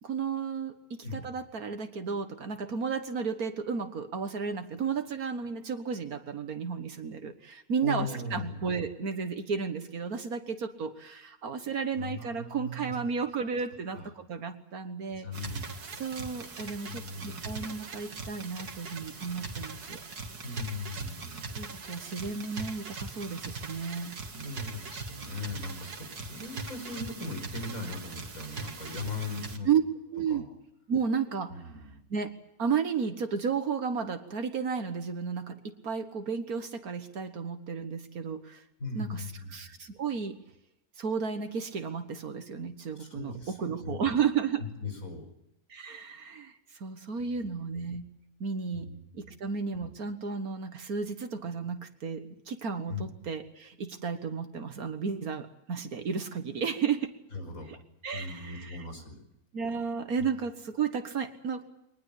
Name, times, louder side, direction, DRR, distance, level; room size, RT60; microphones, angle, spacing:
voice 1, 0.0-0.8 1.1-15.3 16.0-20.0 21.6-24.2 29.6-29.8 30.1-30.5 30.9-31.6 32.1-38.6 38.9-40.4 41.0-44.6 45.7-48.1 48.4-57.1 57.7-57.8 58.0-58.8 59.5-61.7, right 6 dB, 70° right, 7 dB, 1.9 m, -33 dB
voice 2, 7.8-8.7 12.0-13.0 14.0-14.1 15.1-15.7 16.9-17.4 20.4-21.5 24.3-29.7 30.3-30.4 31.5-32.0 38.8-39.7 43.0-43.5 43.8-44.1 44.8-45.3 47.2-47.4 48.7-49.0 49.2-49.4 52.9-53.0 57.3-57.8 58.1-59.2 60.2-60.3, left 3 dB, 60° left, 5 dB, 5.5 m, -39 dB
sound 1, 15.3-29.6, right 3 dB, 90° right, 2.5 m, -41 dB
23.0 x 20.0 x 8.3 m, 0.82 s
omnidirectional pair, 1.6 m